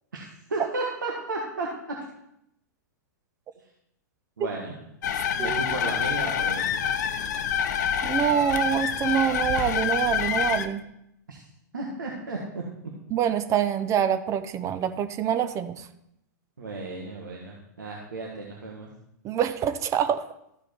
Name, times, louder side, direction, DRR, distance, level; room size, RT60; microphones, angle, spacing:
voice 1, 0.1-1.7 4.4-4.8 5.3-6.8 11.3-11.4 11.7-12.6 16.6-18.9, right 3 dB, 85° right, -2 dB, 1.6 m, -34 dB
sound 1, 5.0-10.7, left 8 dB, 65° left, 0.8 m, -27 dB
voice 2, 8.0-10.8 13.1-15.9 19.2-20.3, right 9 dB, 30° right, 11 dB, 0.6 m, -25 dB
13.5 x 5.0 x 4.4 m, 0.79 s
hypercardioid pair, 110°, 10 cm